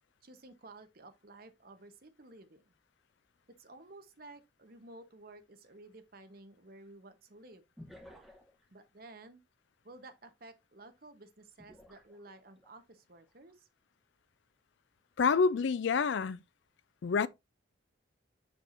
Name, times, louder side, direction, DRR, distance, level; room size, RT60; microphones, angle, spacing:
voice 1, 0.2-2.6 3.6-7.6 8.7-9.4 9.8-13.7, right 2 dB, 50° right, 1.0 m, -53 dB
sound 1, 4.9-5.0 7.8-8.7 11.6-12.7 13.3-13.5, left 1 dB, ahead, 1.0 m, -54 dB
voice 2, 15.2-16.4 17.0-17.3, left 5 dB, 70° left, 0.4 m, -27 dB
6.8 x 5.9 x 2.6 m
head